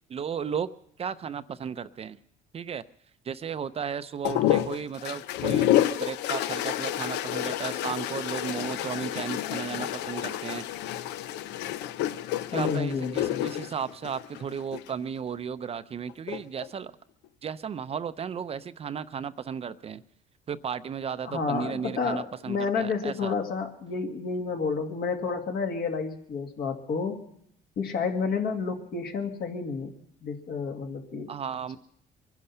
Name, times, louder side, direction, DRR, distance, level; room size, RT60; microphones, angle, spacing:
voice 1, 0.1-0.7 1.0-2.2 2.5-2.8 3.2-10.6 12.5-16.9 17.4-20.0 20.5-23.3 31.3-31.8, right 7 dB, 35° right, 12 dB, 0.6 m, -34 dB
sound 1, 4.2-14.9 16.1-16.7, left 12 dB, 90° left, 0.6 m, -29 dB
voice 2, 12.5-13.4 21.2-27.3 27.8-29.9 30.2-31.3, left 5 dB, 65° left, 3 dB, 2.3 m, -30 dB
23.0 x 10.5 x 5.6 m, 0.70 s
cardioid pair, 110°, 17 cm